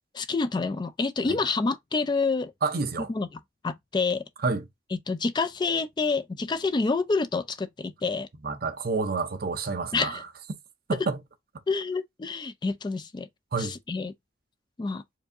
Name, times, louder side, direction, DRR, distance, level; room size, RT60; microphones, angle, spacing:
voice 1, 0.1-2.5 3.1-3.3 3.6-4.2 4.9-8.3 9.9-10.2 11.7-13.3 13.6-14.1 14.8-15.0, left 4 dB, 25° left, 0.3 m, -28 dB
voice 2, 2.6-3.1 4.4-4.6 8.4-10.2 10.9-11.2 13.5-13.7, right 4 dB, 55° right, 0.7 m, -28 dB
4.6 x 2.7 x 2.6 m
head